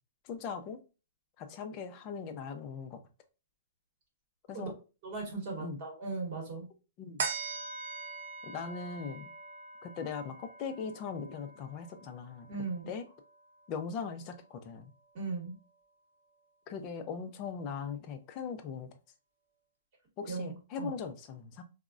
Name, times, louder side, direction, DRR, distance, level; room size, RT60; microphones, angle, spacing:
voice 1, 0.2-0.8 1.4-3.0 4.5-4.7 5.6-5.8 7.0-7.2 8.4-9.3 9.8-12.5 12.9-13.0 13.7-14.9 16.7-18.9 20.2-21.6, left 6 dB, 25° left, 0.4 m, -40 dB
voice 2, 5.0-6.7 12.5-12.9 15.1-15.5 20.3-20.9, right 4 dB, 35° right, 1.0 m, -38 dB
sound 1, 7.2-13.9 14.4-14.5, right 4 dB, 55° right, 0.6 m, -42 dB
3.4 x 2.0 x 2.4 m
hypercardioid pair, 165°, 0 cm